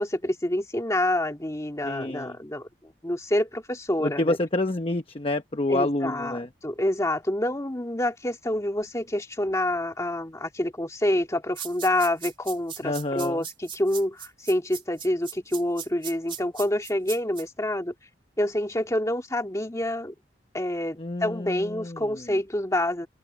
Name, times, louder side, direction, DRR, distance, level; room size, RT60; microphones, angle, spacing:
voice 1, 0.0-4.4 5.7-17.9 18.4-20.1 20.5-23.1, left 1 dB, 20° left, 2.1 m, -27 dB
voice 2, 1.8-2.4 4.0-6.5 12.8-13.4 21.0-22.3, left 2 dB, 35° left, 0.9 m, -28 dB
sound 1, 11.6-17.4, right 8 dB, 30° right, 3.0 m, -38 dB
open air
head